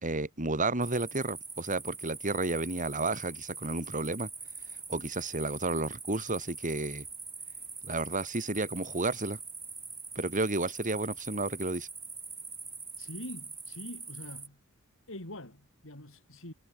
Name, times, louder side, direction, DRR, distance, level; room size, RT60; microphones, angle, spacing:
voice 1, 0.0-4.3 4.9-7.1 7.8-9.4 10.2-11.9, right 2 dB, 35° right, 3.4 m, -32 dB
sound 1, 0.8-14.5, right 4 dB, 10° right, 1.9 m, -43 dB
voice 2, 13.0-14.6 15.1-16.5, left 1 dB, 65° left, 5.8 m, -44 dB
head